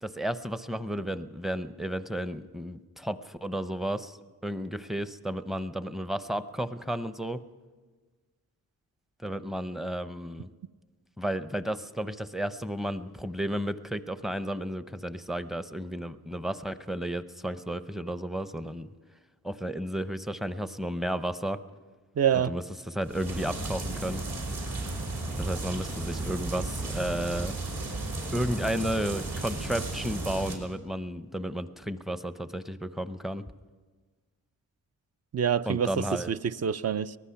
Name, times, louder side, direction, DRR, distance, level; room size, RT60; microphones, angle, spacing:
voice 1, 0.0-4.2 4.4-7.4 9.2-10.5 11.2-18.9 19.4-21.6 22.3-24.2 25.4-27.5 28.3-33.4 35.7-36.3, right 1 dB, ahead, 11 dB, 0.6 m, -33 dB
voice 2, 22.2-22.5 35.3-37.2, right 8 dB, 45° right, 14 dB, 0.5 m, -26 dB
sound 1, 23.0-30.6, right 2 dB, 70° right, 4.6 m, -34 dB
24.0 x 19.0 x 5.8 m, 1.4 s
wide cardioid pair, 140°, 35 cm